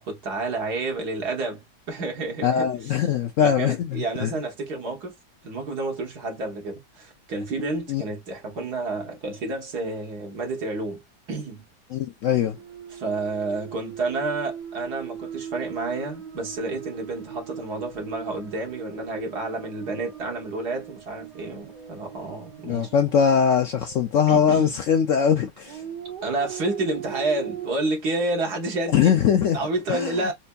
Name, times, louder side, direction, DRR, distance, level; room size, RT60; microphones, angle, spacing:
voice 1, 0.0-3.0 3.4-5.2 5.4-11.0 11.3-11.6 12.9-22.9 24.3-24.8 26.2-29.2 29.5-30.3, right 2 dB, 70° right, 1.8 m, -30 dB
voice 2, 2.4-4.3 7.9-8.0 11.9-12.6 22.7-25.8 28.9-29.6 29.9-30.0, left 8 dB, 65° left, 0.8 m, -21 dB
sound 1, 12.6-24.5 25.6-27.7, right 8 dB, 85° right, 1.6 m, -39 dB
4.3 x 2.6 x 2.3 m
omnidirectional pair, 1.8 m